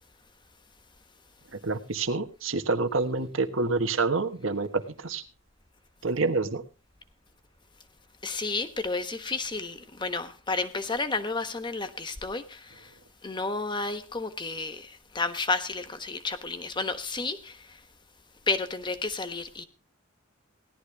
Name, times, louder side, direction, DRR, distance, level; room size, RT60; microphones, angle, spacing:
voice 1, 1.6-5.2 6.0-6.6, right 3 dB, 85° right, 1.5 m, -27 dB
voice 2, 8.2-17.9 18.5-19.7, left 3 dB, 25° left, 1.2 m, -32 dB
17.5 x 11.5 x 3.5 m
head